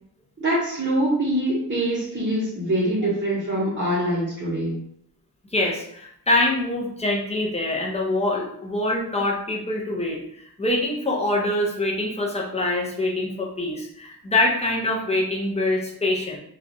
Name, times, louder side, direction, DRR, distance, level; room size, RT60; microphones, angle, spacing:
voice 1, 0.4-4.8, right 1 dB, 30° right, -9 dB, 0.7 m, -24 dB
voice 2, 5.5-10.2 10.6-16.4, left 2 dB, 15° left, -1 dB, 0.5 m, -24 dB
3.0 x 2.3 x 2.5 m, 0.71 s
wide cardioid pair, 130°, 38 cm